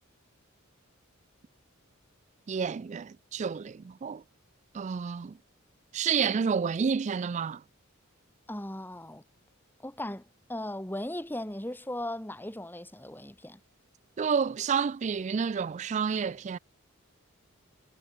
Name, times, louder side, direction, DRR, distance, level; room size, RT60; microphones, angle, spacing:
voice 1, 2.5-4.2 4.7-5.4 5.9-7.6 14.2-16.6, right 6 dB, 35° right, 0.3 m, -29 dB
voice 2, 8.5-9.2 9.8-10.2 10.5-13.6, left 1 dB, 10° left, 2.4 m, -37 dB
head